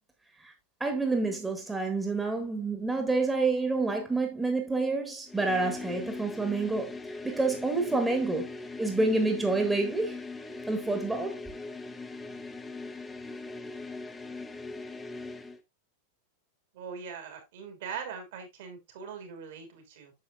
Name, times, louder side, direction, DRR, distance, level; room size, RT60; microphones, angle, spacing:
voice 1, 0.8-10.2 10.7-11.4, right 3 dB, 10° right, 1.6 m, -28 dB
sound 1, 5.3-15.6, left 3 dB, 10° left, 1.0 m, -40 dB
voice 2, 16.7-20.1, right 6 dB, 55° right, 2.9 m, -41 dB
9.5 x 7.0 x 2.4 m
figure-of-eight pair, 90°, 0 cm